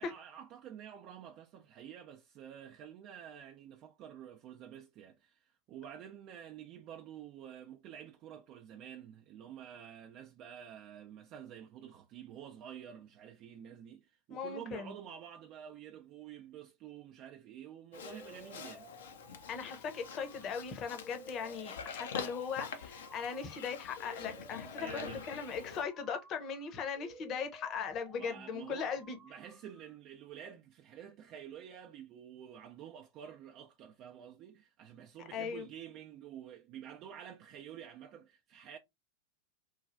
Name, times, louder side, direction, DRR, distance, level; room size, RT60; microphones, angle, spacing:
voice 1, 0.0-18.9 24.8-25.3 28.1-38.8, right 9 dB, 45° right, 0.4 m, -49 dB
voice 2, 14.3-14.9 19.5-29.2 35.3-35.6, left 6 dB, 35° left, 0.8 m, -39 dB
Livestock farm animals working animals, 17.9-25.8, left 6 dB, 70° left, 0.5 m, -46 dB
sound 1, 18.0-30.0, right 1 dB, 10° right, 0.8 m, -56 dB
3.1 x 2.3 x 2.5 m
hypercardioid pair, 95°, 0 cm